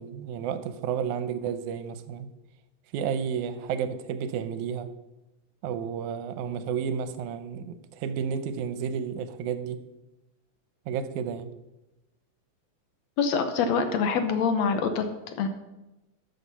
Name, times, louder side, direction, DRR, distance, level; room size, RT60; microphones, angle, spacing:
voice 1, 0.0-2.3 2.9-4.9 5.6-9.9 10.9-11.5, right 7 dB, 85° right, 2.2 m, -31 dB
voice 2, 13.2-15.0 15.4-15.5, left 5 dB, 70° left, 2.0 m, -25 dB
13.0 x 6.6 x 5.6 m
omnidirectional pair, 3.4 m